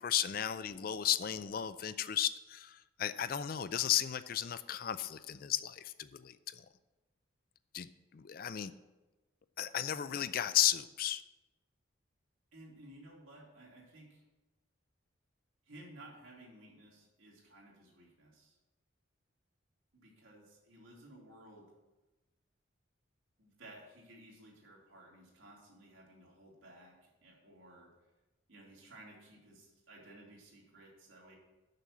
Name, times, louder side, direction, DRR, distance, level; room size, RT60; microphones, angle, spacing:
voice 1, 0.0-6.7 7.7-8.7 9.6-11.2, left 10 dB, 45° left, 14 dB, 0.4 m, -34 dB
voice 2, 12.5-14.2 15.6-18.6 20.0-21.7 23.4-27.9 28.5-31.4, right 1 dB, 85° right, -3 dB, 2.9 m, -56 dB
6.7 x 6.2 x 7.3 m, 1.1 s
head